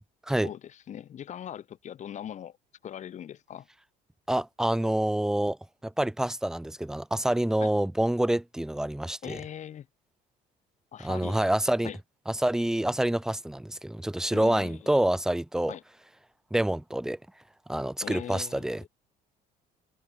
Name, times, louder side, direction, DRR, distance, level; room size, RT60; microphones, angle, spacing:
voice 1, 0.4-2.6 2.8-3.7 7.6-7.7 9.2-9.9 10.9-11.4 11.8-12.0 14.3-15.0 15.7-15.8 18.0-18.9, left 10 dB, 45° left, 1.1 m, -40 dB
voice 2, 4.3-5.6 5.8-9.4 11.0-11.9 12.3-15.7 16.5-17.2 17.7-18.8, right 1 dB, 5° right, 0.4 m, -27 dB
cardioid pair, 110°, 17 cm